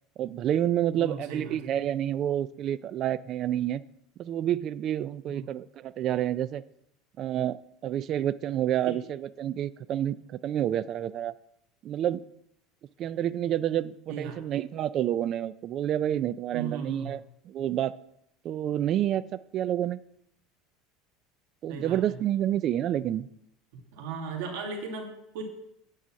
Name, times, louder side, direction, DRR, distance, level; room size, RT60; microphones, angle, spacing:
voice 1, 0.2-3.8 4.2-6.6 7.2-11.3 11.8-12.2 13.0-17.2 17.5-17.9 18.4-19.3 19.5-20.0 21.6-23.3, right 11 dB, 40° right, 17 dB, 0.3 m, -29 dB
voice 2, 0.9-1.7 5.3-5.5 14.1-14.4 16.5-17.2 21.7-22.2 23.9-25.4, right 5 dB, 75° right, 1 dB, 2.0 m, -37 dB
8.9 x 4.1 x 7.2 m, 0.77 s
supercardioid pair, 140°, 0 cm